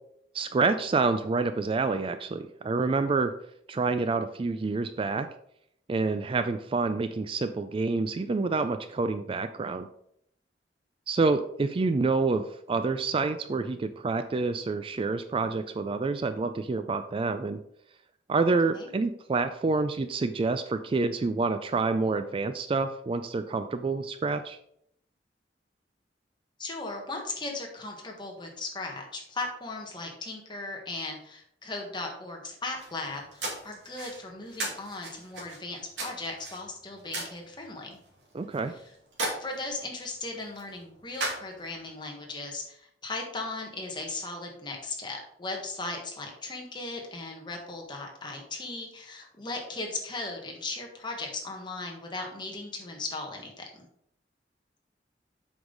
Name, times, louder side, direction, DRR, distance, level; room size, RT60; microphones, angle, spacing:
voice 1, 0.3-3.3 3.7-5.3 5.9-9.9 11.1-17.6 18.3-24.6 38.3-38.7, right 3 dB, 30° right, 10 dB, 0.3 m, -28 dB
voice 2, 26.6-38.0 39.4-53.8, left 2 dB, 25° left, 1 dB, 1.5 m, -37 dB
sound 1, 32.6-41.9, right 2 dB, 85° right, 2.5 m, -39 dB
7.9 x 5.4 x 3.9 m, 0.72 s
head